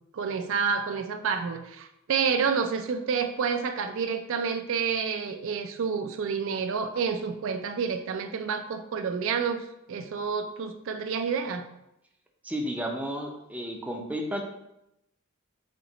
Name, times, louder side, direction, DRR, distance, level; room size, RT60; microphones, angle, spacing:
voice 1, 0.1-11.7, right 6 dB, 65° right, 7 dB, 0.4 m, -29 dB
voice 2, 12.4-14.4, equal, 5° right, 1 dB, 0.5 m, -32 dB
4.4 x 2.9 x 3.9 m, 0.85 s
head